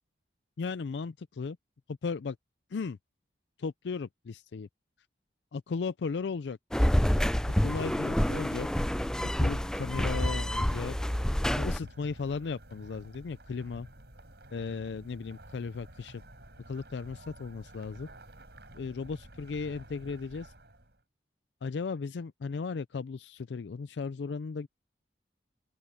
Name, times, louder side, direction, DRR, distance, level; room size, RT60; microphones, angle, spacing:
voice 1, 0.6-1.6 1.9-2.4 2.7-3.0 3.6-4.7 5.5-6.6 7.6-8.7 9.4-11.0 11.6-13.9 14.5-16.2 16.7-18.1 18.7-20.5 21.6-24.7, left 5 dB, 80° left, 0.4 m, -36 dB
sound 1, 6.7-11.8, equal, 5° left, 0.3 m, -28 dB
sound 2, 7.6-21.0, right 1 dB, 65° right, 7.1 m, -52 dB
open air
head